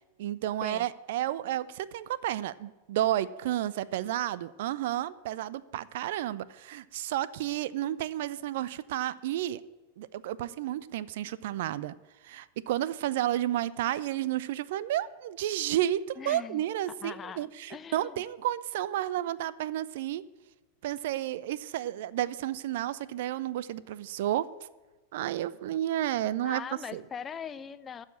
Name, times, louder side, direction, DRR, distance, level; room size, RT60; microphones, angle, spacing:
voice 1, 0.2-9.6 10.0-11.9 12.2-20.2 20.8-24.5 25.1-26.6 26.9-27.0, right 13 dB, 55° right, 19 dB, 0.4 m, -31 dB
voice 2, 16.2-16.6 17.0-18.2 26.4-28.1, left 7 dB, 20° left, 15 dB, 0.5 m, -41 dB
13.0 x 4.9 x 8.6 m, 1.2 s
figure-of-eight pair, 90°, 0 cm